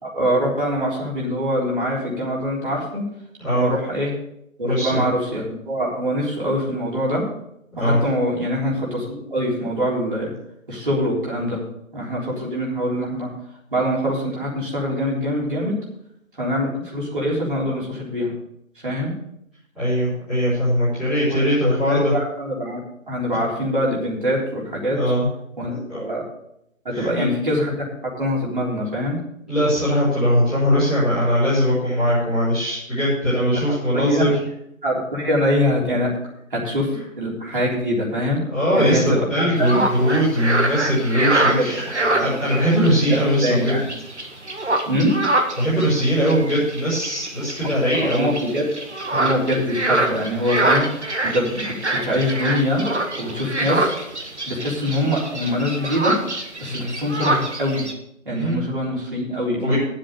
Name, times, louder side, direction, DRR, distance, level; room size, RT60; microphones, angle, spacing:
voice 1, 0.0-3.1 3.6-4.1 4.6-7.2 7.8-10.3 10.7-11.6 11.9-13.3 13.7-15.8 16.4-18.3 18.8-19.1 21.3-22.8 23.1-25.0 25.6-26.2 26.8-27.8 28.2-29.2 33.6-33.7 33.9-34.3 34.8-36.1 36.5-36.9 37.2-38.4 38.7-39.8 41.3-42.5 43.0-43.9 44.9-45.1 47.6-48.7 49.1-50.9 51.3-51.7 52.0-52.8 53.2-53.9 54.5-56.2 56.6-57.9 58.3-59.8, equal, 40° right, -5 dB, 3.7 m, -24 dB
voice 2, 4.6-5.0 7.7-8.0 19.7-22.1 24.9-25.3 25.7-26.0 26.9-27.3 29.5-34.3 38.5-41.8 42.2-43.8 45.6-48.3 56.7-56.9 58.3-58.6 59.6-59.8, equal, ahead, -18 dB, 2.9 m, -20 dB
sound 1, 39.6-57.9, right 2 dB, 55° right, 1.8 m, -25 dB
11.0 x 7.7 x 6.7 m, 0.78 s
figure-of-eight pair, 165°, 40 cm